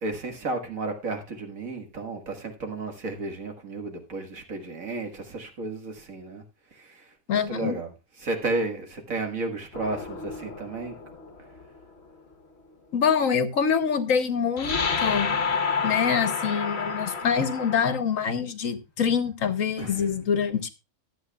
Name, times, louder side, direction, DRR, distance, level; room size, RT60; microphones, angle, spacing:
voice 1, 0.0-6.4 6.7-7.9 8.2-11.0 19.8-20.1, right 3 dB, 65° right, 2.1 m, -33 dB
voice 2, 7.3-7.7 12.9-15.4 15.8-20.7, left 7 dB, 65° left, 1.4 m, -25 dB
sound 1, 9.7-11.6 14.6-18.0, left 5 dB, 50° left, 1.3 m, -29 dB
22.5 x 8.2 x 2.3 m
omnidirectional pair, 1.6 m